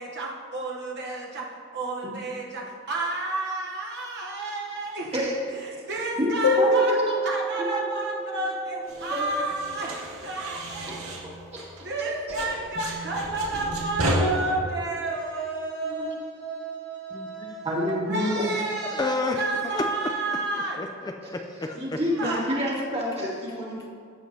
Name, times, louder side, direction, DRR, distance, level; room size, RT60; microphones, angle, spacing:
voice 1, 0.0-1.5 1.7-5.2 5.5-7.0 7.2-11.2 11.8-20.8 22.2-22.4, right 2 dB, 55° right, -2 dB, 0.9 m, -31 dB
voice 2, 5.1-5.7 6.2-7.2 7.5-8.4 8.9-9.3 11.2-11.7 12.4-12.5 15.8-16.2 17.6-18.5 21.7-23.9, equal, 30° right, -5 dB, 2.2 m, -29 dB
sound 1, 6.4-9.7, equal, 75° left, 1.3 m, -27 dB
sound 2, 8.9-12.0 12.3-14.1, right 2 dB, 90° right, 1.8 m, -34 dB
voice 3, 17.1-17.6 18.5-20.1 20.8-22.0, left 3 dB, 20° left, 3 dB, 0.4 m, -31 dB
14.5 x 7.5 x 2.7 m, 2.2 s
head